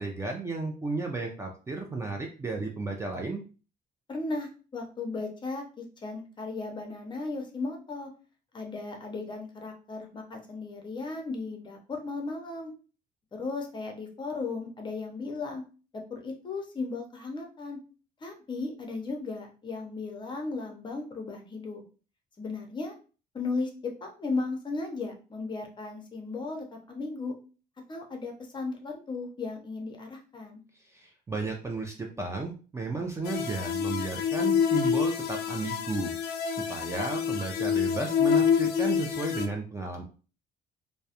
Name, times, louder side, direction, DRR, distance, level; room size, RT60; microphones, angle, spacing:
voice 1, 0.0-3.4 30.8-36.1 36.5-40.0, right 3 dB, 15° right, 1 dB, 0.3 m, -33 dB
voice 2, 4.1-8.1 8.5-12.7 13.3-15.6 15.9-17.8 18.2-21.8 22.4-22.9 23.3-27.3 27.9-30.6, left 3 dB, 25° left, 3 dB, 0.6 m, -36 dB
sound 1, 33.2-39.5, left 7 dB, 75° left, 0.4 m, -27 dB
2.2 x 2.0 x 2.7 m, 0.36 s
cardioid pair, 110°, 17 cm